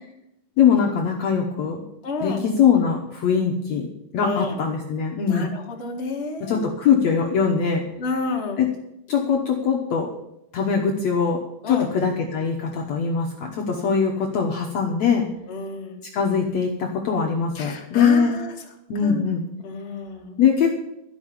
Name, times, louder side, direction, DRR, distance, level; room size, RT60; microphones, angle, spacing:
voice 1, 0.6-1.8 2.2-5.5 6.4-7.8 8.6-8.7 9.1-10.1 10.5-11.4 11.7-15.3 16.1-18.3 18.9-19.4 20.4-20.7, left 6 dB, 90° left, 0 dB, 1.5 m, -21 dB
voice 2, 2.0-2.4 4.2-4.6 5.2-6.6 8.0-8.6 11.6-11.9 13.8-14.1 15.5-16.0 17.5-18.5 19.0-19.3 19.6-20.4, left 3 dB, 30° left, -1 dB, 1.1 m, -30 dB
12.5 x 6.1 x 9.6 m, 0.84 s
omnidirectional pair, 5.0 m